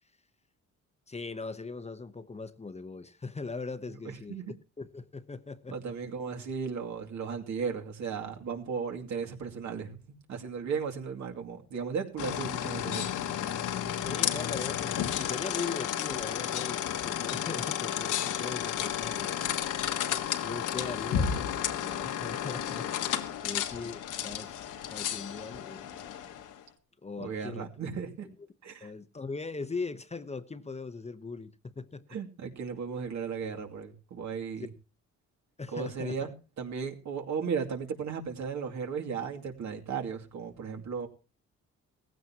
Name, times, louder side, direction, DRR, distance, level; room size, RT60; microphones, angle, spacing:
voice 1, 1.1-4.4 4.8-5.8 14.0-19.3 19.9-24.6 24.9-25.9 27.0-27.7 28.8-32.0 34.6-34.7 35.6-36.3, left 4 dB, 20° left, 1.0 m, -40 dB
voice 2, 5.7-10.0 10.3-13.1 27.2-28.3 28.6-28.9 32.1-34.7 35.7-41.1, right 6 dB, 70° right, 2.6 m, -35 dB
sound 1, 12.2-26.6, left 10 dB, 85° left, 1.6 m, -32 dB
17.5 x 15.5 x 2.9 m
cardioid pair, 90°, 30 cm